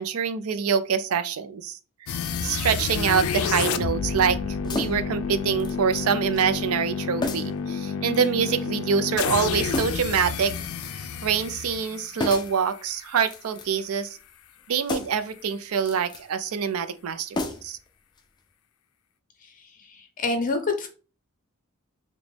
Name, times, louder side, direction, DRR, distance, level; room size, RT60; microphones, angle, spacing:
voice 1, 0.0-4.4 4.6-10.5 11.2-14.2 14.7-17.4 17.6-17.8, right 7 dB, 85° right, 0.4 m, -25 dB
sound 1, 2.1-13.0, left 6 dB, 90° left, 0.4 m, -30 dB
sound 2, 3.1-3.5 4.6-5.2 5.6-6.1 6.3-6.5 7.2-7.6 8.1-8.7 9.7-10.1 10.5-11.1 12.2-12.6 13.2-13.9 14.8-15.3 15.8-16.3 17.3-17.9 18.2-18.3, left 2 dB, 20° left, 0.4 m, -33 dB
voice 2, 19.9-20.9, left 3 dB, 40° left, 0.8 m, -26 dB
5.0 x 2.2 x 3.3 m
head